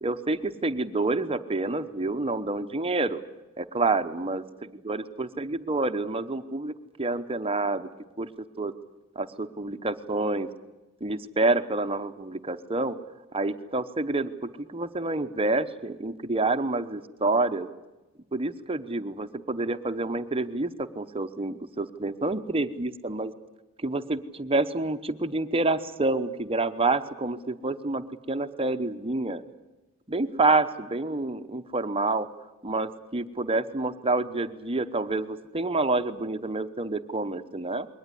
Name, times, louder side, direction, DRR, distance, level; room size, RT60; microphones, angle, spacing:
voice 1, 0.0-3.2 3.6-4.4 4.9-7.9 8.2-8.3 8.6-8.7 9.2-10.5 11.0-13.0 13.3-17.7 18.3-23.3 23.8-29.4 30.1-32.3 32.6-37.9, right 2 dB, 25° right, 9 dB, 0.9 m, -28 dB
21.5 x 18.5 x 9.9 m, 1.1 s
head